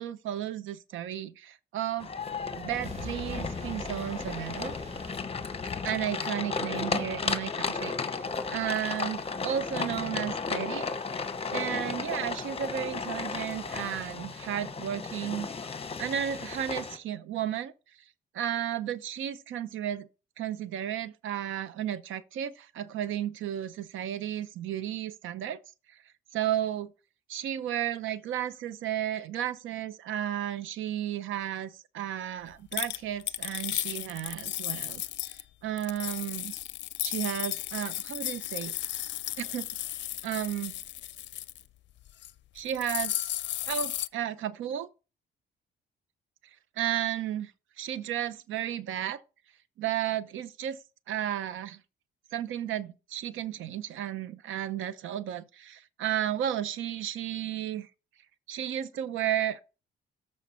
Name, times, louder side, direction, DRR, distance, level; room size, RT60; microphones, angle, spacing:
voice 1, 0.0-2.1 2.5-4.7 5.8-10.9 11.5-15.7 16.0-17.7 18.3-20.1 20.4-25.6 25.9-26.0 26.3-26.9 27.3-35.0 35.6-36.5 37.0-38.7 39.4-39.7 40.2-40.7 42.5-43.4 43.7-44.9 46.8-47.5 47.8-49.2 49.8-50.8 51.1-51.8 52.3-57.9 58.5-59.6, right 11 dB, 80° right, 0.8 m, -33 dB
sound 1, 2.0-17.0, left 4 dB, 30° left, 1.0 m, -34 dB
sound 2, 2.1-5.9, right 1 dB, 30° right, 1.8 m, -44 dB
sound 3, 32.7-35.4 35.8-41.6 42.1-42.3 42.6-44.1, left 13 dB, 65° left, 0.5 m, -34 dB
13.5 x 4.7 x 4.4 m
cardioid pair, 90°, 20 cm